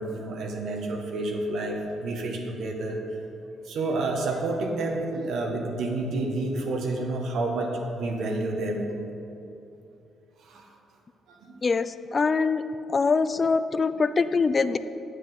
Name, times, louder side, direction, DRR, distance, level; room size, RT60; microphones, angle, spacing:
voice 1, 0.0-3.0 3.6-8.9 10.4-10.7 11.3-11.6, right 2 dB, 70° right, 2 dB, 1.3 m, -29 dB
voice 2, 11.6-12.6 12.9-14.8, left 4 dB, 35° left, 13 dB, 0.4 m, -23 dB
9.3 x 4.9 x 7.9 m, 2.8 s
cardioid pair, 90°, 0 cm